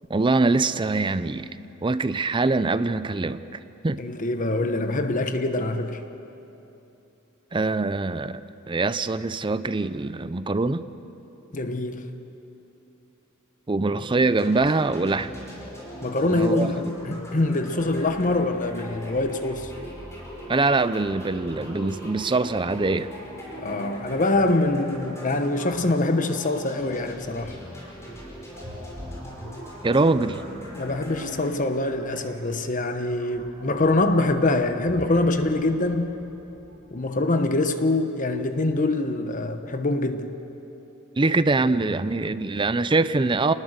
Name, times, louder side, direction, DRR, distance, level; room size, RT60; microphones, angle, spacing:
voice 1, 0.1-1.5 1.8-3.4 3.8-4.0 7.5-10.8 13.7-15.3 16.2-16.7 20.5-23.1 29.8-30.4 41.2-43.5, right 3 dB, 25° right, 0.5 m, -23 dB
voice 2, 4.0-6.0 11.5-12.1 16.0-19.7 23.6-27.6 30.7-36.2 36.9-40.3, left 2 dB, 40° left, 1.1 m, -24 dB
sound 1, 14.3-31.5, equal, 15° left, 5.4 m, -40 dB
sound 2, 28.5-37.3, equal, 85° right, 8.0 m, -46 dB
28.5 x 19.5 x 6.7 m
head